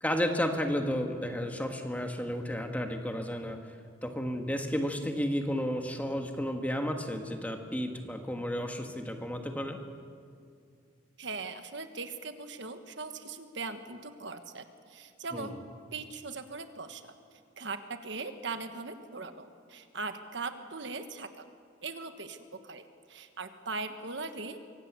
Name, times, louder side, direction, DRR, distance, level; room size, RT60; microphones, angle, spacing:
voice 1, 0.0-3.6 4.0-9.8 15.3-15.5, equal, 10° left, 4 dB, 1.5 m, -32 dB
voice 2, 11.2-15.6 15.9-17.1 17.6-21.4 21.8-22.4 22.6-24.7, right 3 dB, 65° right, 8 dB, 1.4 m, -40 dB
24.5 x 17.0 x 8.4 m, 2.3 s
head